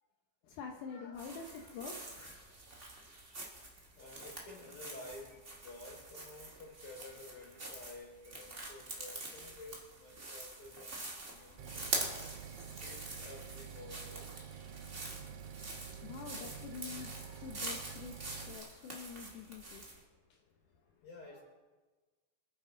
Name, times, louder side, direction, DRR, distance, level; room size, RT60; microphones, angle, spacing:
voice 1, 0.4-2.4 15.8-19.9, left 6 dB, 80° left, 1 dB, 2.5 m, -47 dB
sound 1, 1.1-20.0, right 2 dB, 25° right, 2.2 m, -45 dB
voice 2, 3.3-12.1 12.6-14.5 15.1-15.3 16.2-16.6 17.0-18.7 19.0-19.2 21.0-21.4, left 2 dB, 45° left, -3 dB, 5.6 m, -53 dB
sound 2, 11.6-18.6, right 8 dB, 70° right, 1.5 m, -49 dB
26.0 x 9.8 x 3.9 m, 1.3 s
omnidirectional pair, 3.7 m